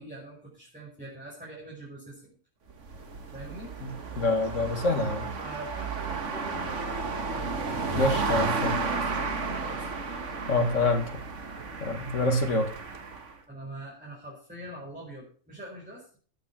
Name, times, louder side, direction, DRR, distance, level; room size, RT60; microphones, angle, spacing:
voice 1, 0.0-2.4 3.3-3.7 5.4-6.8 7.9-10.0 13.5-16.2, right 1 dB, 5° right, 5.3 m, -43 dB
sound 1, 2.7-13.3, right 4 dB, 65° right, 1.8 m, -33 dB
voice 2, 3.8-5.3 7.9-8.8 10.5-11.1 11.8-12.7, left 2 dB, 65° left, 2.3 m, -26 dB
13.0 x 9.2 x 5.9 m
omnidirectional pair, 1.4 m